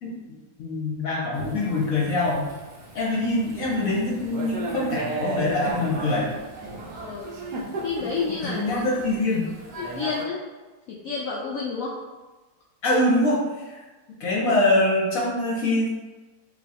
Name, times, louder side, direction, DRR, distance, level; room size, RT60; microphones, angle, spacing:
voice 1, 0.0-2.5 2.9-6.4 8.4-9.5 12.8-13.8 14.2-15.9, left 2 dB, 55° left, -5 dB, 1.2 m, -24 dB
Thunder / Rain, 1.3-10.2, right 2 dB, 65° right, 1.2 m, -35 dB
voice 2, 7.8-9.0 9.8-10.4 10.9-11.9, left 5 dB, 90° left, -4 dB, 0.7 m, -30 dB
3.2 x 2.3 x 4.1 m, 1.2 s
omnidirectional pair, 2.0 m